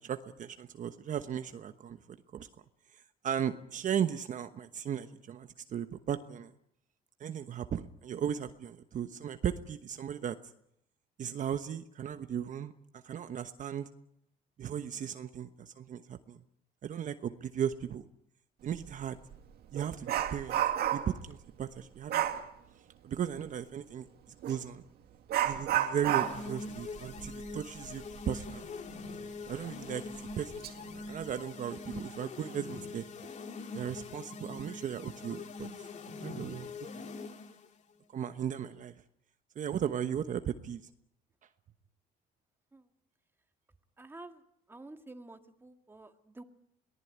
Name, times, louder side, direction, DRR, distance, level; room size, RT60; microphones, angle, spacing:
voice 1, 0.0-2.0 2.3-2.5 3.2-6.5 7.2-10.4 11.2-13.9 14.6-16.4 16.8-18.0 18.6-19.2 19.7-20.6 20.9-22.4 23.0-24.1 24.4-24.8 25.4-28.6 29.5-30.5 30.9-33.3 33.7-35.7 36.2-37.1 38.1-38.9 39.5-40.9, right 9 dB, 50° right, 9 dB, 1.1 m, -36 dB
Dog, 18.7-18.9 19.3-21.2 22.1-22.5 24.4-24.6 25.3-28.6 28.9-29.0 29.5-29.6 30.3-30.7 31.1-31.3, right 11 dB, 70° right, 2.2 m, -32 dB
sound 1, 26.1-37.7, left 3 dB, 45° left, 2.3 m, -43 dB
voice 2, 44.0-44.4 44.7-46.4, right 2 dB, 15° right, 6 dB, 1.9 m, -49 dB
23.0 x 18.5 x 9.4 m, 0.74 s
cardioid pair, 110°, 17 cm